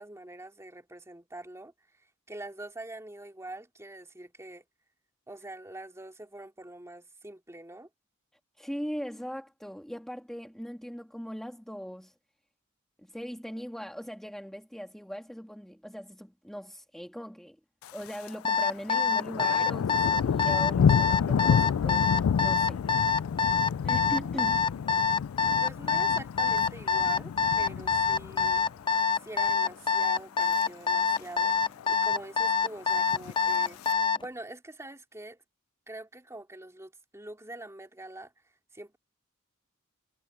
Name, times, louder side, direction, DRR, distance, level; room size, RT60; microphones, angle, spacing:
voice 1, 0.0-4.6 5.3-7.9 25.6-28.6 29.2-35.4 35.9-39.0, right 1 dB, 15° right, 2.7 m, -44 dB
voice 2, 8.6-12.1 13.0-17.6 17.9-22.8 23.8-24.6, equal, ahead, 1.7 m, -40 dB
Thunder, 17.8-18.4 18.7-29.0 29.4-29.7 30.2-30.6 30.9-31.0 31.2-31.3 31.6-32.2 33.0-33.9, left 7 dB, 75° left, 0.3 m, -30 dB
Alarm, 18.4-34.3, left 6 dB, 25° left, 0.6 m, -25 dB
head